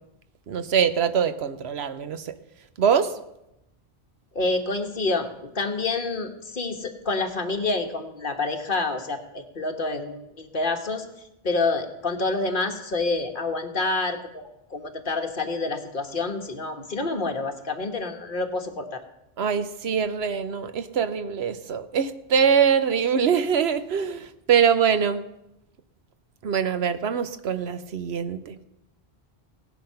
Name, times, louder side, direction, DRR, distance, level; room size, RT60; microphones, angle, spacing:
voice 1, 0.5-2.3 2.8-3.1 19.4-25.2 26.4-28.6, right 7 dB, 75° right, 12 dB, 1.1 m, -23 dB
voice 2, 4.3-5.3 5.5-11.0 11.4-19.0, left 3 dB, 55° left, 5 dB, 1.5 m, -28 dB
16.5 x 10.5 x 5.7 m, 0.87 s
omnidirectional pair, 1.1 m